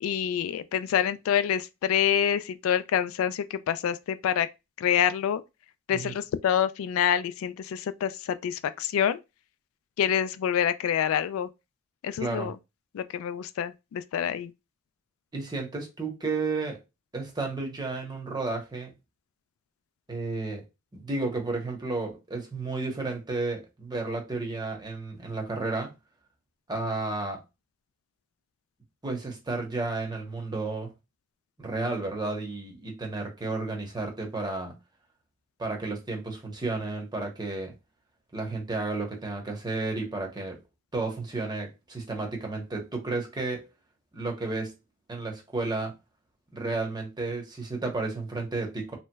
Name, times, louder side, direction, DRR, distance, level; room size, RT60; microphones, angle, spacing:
voice 1, 0.0-4.5 4.8-5.4 5.9-9.2 10.0-11.5 12.0-12.5 12.9-14.5, left 9 dB, 90° left, 0.3 m, -27 dB
voice 2, 12.2-12.5 15.3-16.8 17.1-18.9 20.1-20.6 20.9-25.9 26.7-27.4 29.0-30.9 31.6-34.8 35.6-37.7 38.3-40.6 40.9-43.7 44.1-44.7 45.1-45.9 46.5-49.0, right 3 dB, 20° right, 0.8 m, -32 dB
3.2 x 3.0 x 2.2 m
head